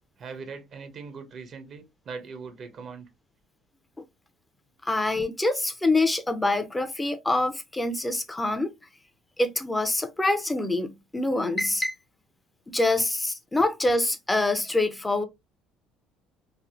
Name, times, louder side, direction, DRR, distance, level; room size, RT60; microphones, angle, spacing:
voice 1, 0.2-3.1, right 5 dB, 50° right, 0.7 m, -40 dB
voice 2, 4.8-8.7 9.4-12.0 12.7-15.2, left 2 dB, 15° left, 0.6 m, -25 dB
3.3 x 2.1 x 2.4 m
hypercardioid pair, 65°, 0 cm